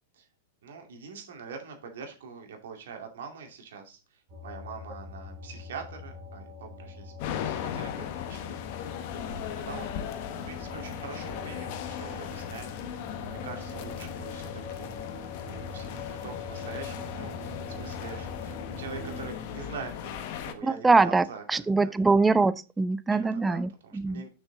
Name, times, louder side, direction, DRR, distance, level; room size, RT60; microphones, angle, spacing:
voice 1, 0.6-7.1 7.4-9.9 10.4-15.0 15.5-21.4 21.8-21.9 23.1-24.3, right 5 dB, 75° right, 2.3 m, -44 dB
sound 1, 4.3-19.3, left 3 dB, 55° right, 3.3 m, -43 dB
sound 2, 7.2-20.5, left 9 dB, 55° left, 1.1 m, -37 dB
voice 2, 20.6-24.2, right 3 dB, 10° right, 0.5 m, -23 dB
6.4 x 6.1 x 3.8 m
hypercardioid pair, 115°, 0 cm